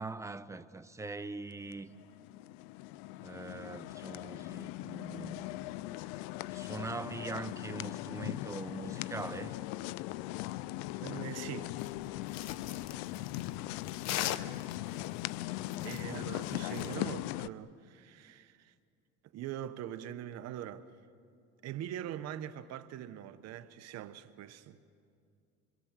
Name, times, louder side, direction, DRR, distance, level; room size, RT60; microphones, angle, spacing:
voice 1, 0.0-1.9 3.2-5.5 6.5-9.6 15.7-16.3, right 3 dB, 10° right, 0.9 m, -42 dB
sound 1, 1.7-17.5, left 17 dB, 85° left, 0.6 m, -40 dB
voice 2, 11.0-11.7 15.8-18.7 19.3-20.9 21.6-24.8, right 11 dB, 55° right, 1.2 m, -42 dB
sound 2, 11.8-16.9, left 12 dB, 60° left, 1.0 m, -41 dB
26.0 x 25.5 x 7.6 m
supercardioid pair, 110°, 30 cm